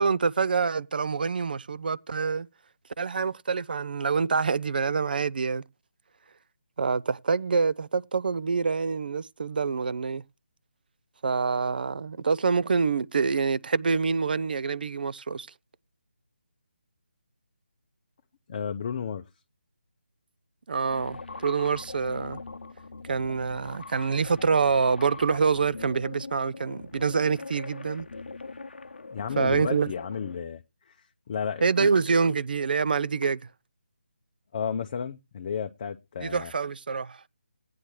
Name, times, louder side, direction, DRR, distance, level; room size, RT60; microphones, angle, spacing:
voice 1, 0.0-2.5 3.0-5.6 6.8-10.2 11.2-15.5 20.7-22.4 23.1-28.1 29.4-29.9 31.6-33.4 36.2-37.2, right 5 dB, 55° right, 0.5 m, -26 dB
voice 2, 18.5-19.2 29.1-31.9 34.5-36.5, left 7 dB, 35° left, 0.6 m, -33 dB
sound 1, 20.9-30.4, left 3 dB, 70° left, 0.7 m, -41 dB
16.0 x 9.5 x 3.1 m
figure-of-eight pair, 155°, 6 cm